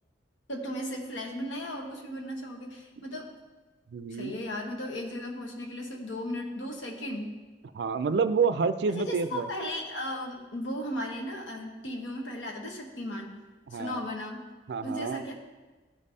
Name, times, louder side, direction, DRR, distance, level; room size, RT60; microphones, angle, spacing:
voice 1, 0.5-3.3 4.1-7.4 8.9-13.4 13.7-14.5 14.8-15.3, left 1 dB, 90° left, 1 dB, 1.3 m, -36 dB
voice 2, 3.9-4.3 7.7-9.5 13.7-14.0 14.7-15.2, right 5 dB, 60° right, 12 dB, 0.4 m, -28 dB
13.5 x 5.3 x 2.7 m, 1.3 s
head